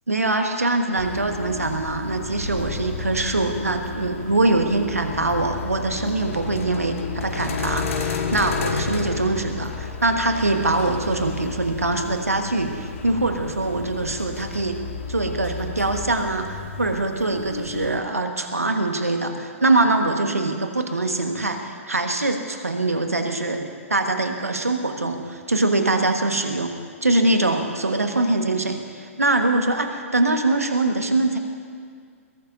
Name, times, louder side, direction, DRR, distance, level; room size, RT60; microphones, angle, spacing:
voice 1, 0.1-14.8 15.1-26.7 27.0-31.4, right 2 dB, 90° right, 5 dB, 1.5 m, -23 dB
sound 1, 1.0-18.0, left 5 dB, 65° left, 1.6 m, -32 dB
21.5 x 17.0 x 2.7 m, 2.1 s
figure-of-eight pair, 120°, 8 cm